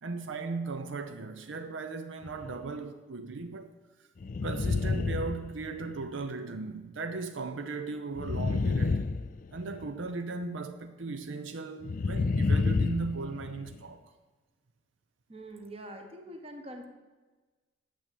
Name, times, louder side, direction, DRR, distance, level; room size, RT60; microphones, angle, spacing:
voice 1, 0.0-3.7 4.4-9.1 9.5-14.1, right 3 dB, 75° right, 0.6 m, -37 dB
sound 1, 2.2-2.6 4.2-6.1 8.1-9.9 11.8-13.8, left 3 dB, 40° left, 0.3 m, -30 dB
voice 2, 15.3-16.9, right 1 dB, 30° right, 1.2 m, -44 dB
9.0 x 6.9 x 8.3 m
head